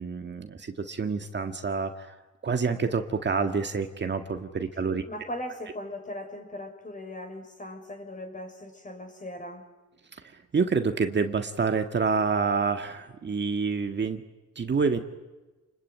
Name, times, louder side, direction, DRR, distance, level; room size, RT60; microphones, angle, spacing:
voice 1, 0.0-2.2 2.4-5.0 10.1-14.2 14.6-15.0, right 5 dB, 35° right, 6 dB, 1.8 m, -28 dB
voice 2, 5.1-9.7, left 1 dB, 25° left, 6 dB, 6.0 m, -39 dB
29.0 x 21.5 x 9.5 m, 1.2 s
cardioid pair, 90°, 30 cm